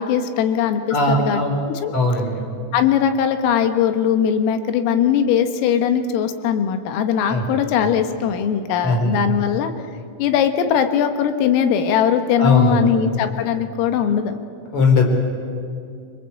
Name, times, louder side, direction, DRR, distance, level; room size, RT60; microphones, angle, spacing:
voice 1, 0.0-1.9 2.7-9.7 10.2-14.4, left 8 dB, 90° left, 8 dB, 4.0 m, -20 dB
voice 2, 0.9-1.5 1.9-2.4 7.3-7.5 8.8-9.1 12.4-13.1 14.7-15.1, left 3 dB, 30° left, 3 dB, 4.0 m, -18 dB
26.5 x 25.0 x 8.4 m, 2.4 s
omnidirectional pair, 5.8 m